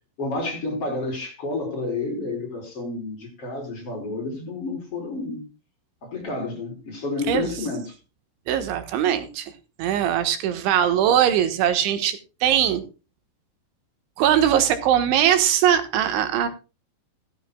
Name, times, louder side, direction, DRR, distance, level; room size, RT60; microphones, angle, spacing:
voice 1, 0.2-5.5 6.0-7.9, left 3 dB, 30° left, 5.4 m, -30 dB
voice 2, 8.5-9.5 9.8-12.8 14.2-16.5, right 10 dB, 80° right, 3.7 m, -21 dB
17.0 x 13.5 x 2.3 m
omnidirectional pair, 5.4 m